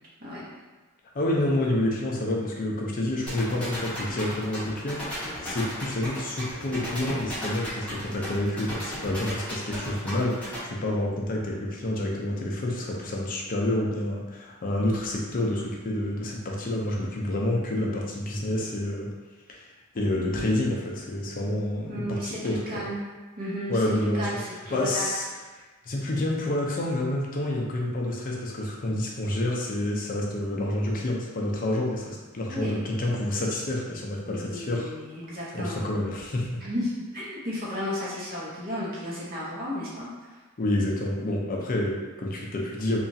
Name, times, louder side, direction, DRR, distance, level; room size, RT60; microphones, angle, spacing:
voice 1, 1.1-19.1 19.5-22.8 23.7-24.4 24.7-25.3 25.8-34.9 35.5-36.6 40.6-43.0, left 1 dB, 40° left, -1 dB, 0.5 m, -28 dB
sound 1, 3.3-10.6, equal, 5° left, 0.8 m, -35 dB
voice 2, 21.9-23.0 23.4-25.1 25.5-25.6 32.5-32.8 34.3-35.8 36.6-40.1, equal, 40° right, -7 dB, 0.7 m, -34 dB
2.9 x 2.3 x 2.6 m, 1.3 s
head